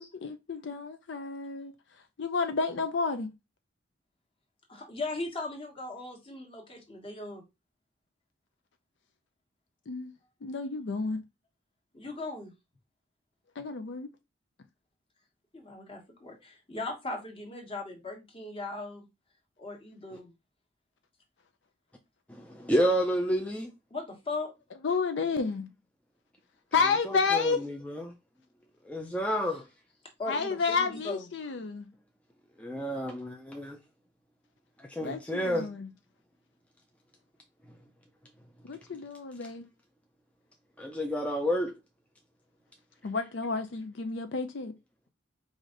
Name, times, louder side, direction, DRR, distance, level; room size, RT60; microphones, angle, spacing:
voice 1, 0.0-1.7 2.2-3.3 9.9-10.1 10.4-11.2 13.6-14.1 24.8-25.7 26.7-27.6 30.3-31.9 35.0-35.9 38.6-39.6 43.0-44.7, left 4 dB, 65° left, 0.5 m, -30 dB
voice 2, 4.7-7.4 11.9-12.5 15.5-19.1 19.6-20.3 23.9-24.5 30.2-31.3, left 2 dB, 30° left, 1.3 m, -38 dB
voice 3, 22.3-23.7 27.0-28.1 28.8-29.6 32.6-33.8 34.8-35.7 40.8-41.7, equal, 5° left, 0.5 m, -30 dB
4.9 x 2.6 x 3.8 m
head